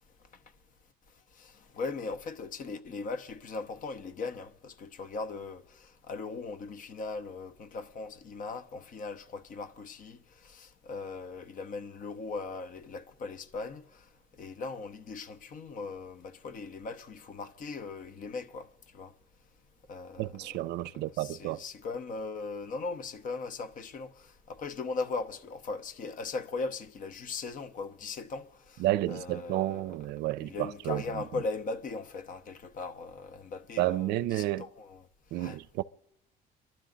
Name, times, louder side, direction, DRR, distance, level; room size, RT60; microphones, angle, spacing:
voice 1, 1.4-14.0 14.4-18.7 18.9-19.1 19.9-30.0 30.4-35.0 35.3-35.6, left 4 dB, 50° left, 1.0 m, -39 dB
voice 2, 20.2-21.6 28.8-31.2 33.8-34.7 35.3-35.8, right 16 dB, 80° right, 0.5 m, -31 dB
29.5 x 12.0 x 3.9 m
cardioid pair, 110°, 17 cm